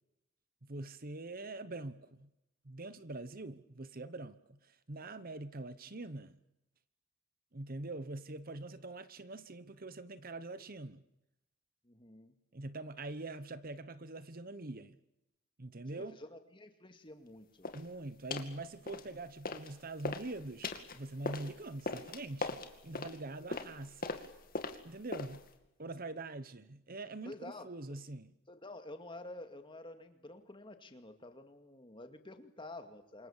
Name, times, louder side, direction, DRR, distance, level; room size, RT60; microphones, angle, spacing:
voice 1, 0.6-2.3 2.6-6.4 7.5-11.0 12.5-15.0 15.6-16.2 17.7-24.1 24.8-25.4 25.8-28.3, right 2 dB, 40° right, 1.1 m, -44 dB
voice 2, 11.8-12.3 15.9-17.7 27.2-28.0 28.5-33.3, left 2 dB, 25° left, 2.2 m, -50 dB
sound 1, 17.6-17.9 18.3-18.6 18.9-19.7 20.0-25.5, left 3 dB, 40° left, 2.4 m, -40 dB
27.5 x 23.5 x 7.3 m
head